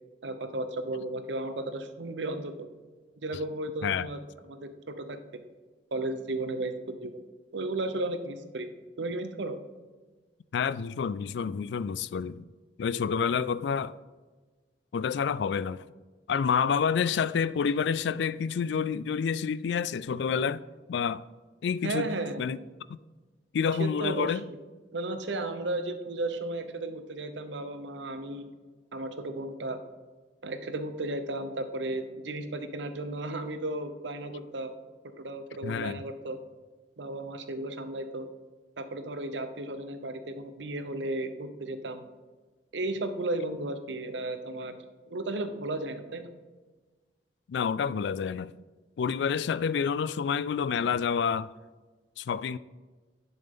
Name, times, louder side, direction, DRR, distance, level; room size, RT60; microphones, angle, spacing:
voice 1, 0.2-2.7 3.2-5.2 5.9-7.2 7.5-8.7 9.0-9.6 21.8-22.4 23.8-24.6 24.9-28.4 28.9-29.8 30.4-34.7 35.2-36.4 37.0-38.3 38.8-42.1 42.7-44.8 45.1-46.3, right 2 dB, 80° right, 0.8 m, -34 dB
voice 2, 10.5-12.4 12.8-13.9 14.9-15.8 16.3-20.6 20.9-21.2 21.6-22.1 22.4-22.6 22.9-23.0 23.5-24.5 35.6-36.0 47.5-48.5 49.0-51.5 52.2-52.6, left 6 dB, 75° left, 0.3 m, -28 dB
10.5 x 6.9 x 3.7 m
head